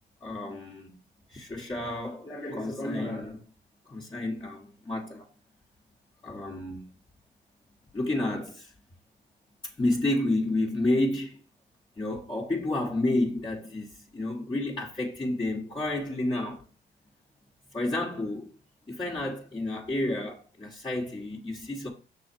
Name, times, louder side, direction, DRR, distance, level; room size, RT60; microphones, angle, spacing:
voice 1, 0.2-0.9 1.3-3.4 3.9-5.2 6.2-6.8 7.9-8.7 9.8-11.4 12.0-13.9 14.1-16.6 17.7-18.5 18.9-21.9, left 1 dB, 25° left, 1.5 m, -30 dB
6.4 x 3.9 x 4.5 m
cardioid pair, 90°, 20 cm